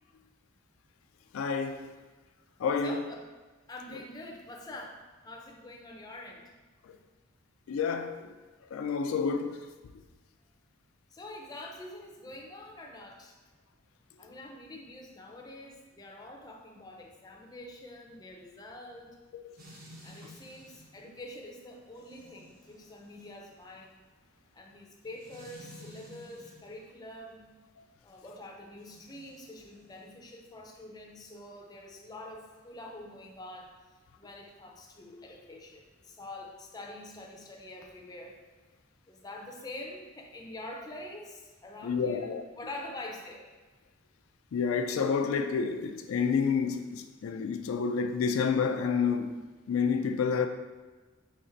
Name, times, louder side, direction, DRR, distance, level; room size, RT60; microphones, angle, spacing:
voice 1, 1.3-1.9 2.6-3.0 3.9-4.0 6.8-6.9 7.7-8.3 8.7-9.6 19.4-19.6 20.2-20.3 41.8-42.4 44.5-49.4 49.7-50.5, left 5 dB, 80° left, 0.3 m, -29 dB
voice 2, 2.8-3.3 3.7-6.5 11.1-13.4 14.2-19.2 20.0-24.0 24.5-27.5 28.0-33.7 34.2-38.4 39.1-42.3 42.5-43.5, left 1 dB, 20° left, 0.5 m, -45 dB
sound 1, 19.6-26.8 28.7-30.1, equal, 45° right, 0.9 m, -54 dB
4.2 x 3.2 x 3.9 m
head